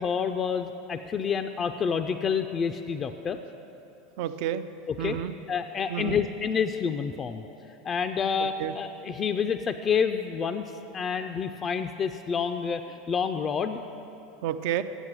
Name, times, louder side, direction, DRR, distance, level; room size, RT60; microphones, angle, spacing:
voice 1, 0.0-3.4 4.9-5.2 5.5-7.4 7.8-13.8, left 6 dB, 35° left, 8 dB, 0.4 m, -28 dB
voice 2, 4.2-4.7 5.0-5.3 5.9-6.2 8.4-8.8 14.4-14.8, right 11 dB, 65° right, 11 dB, 0.4 m, -30 dB
8.0 x 7.3 x 7.3 m, 2.9 s
hypercardioid pair, 90°, 0 cm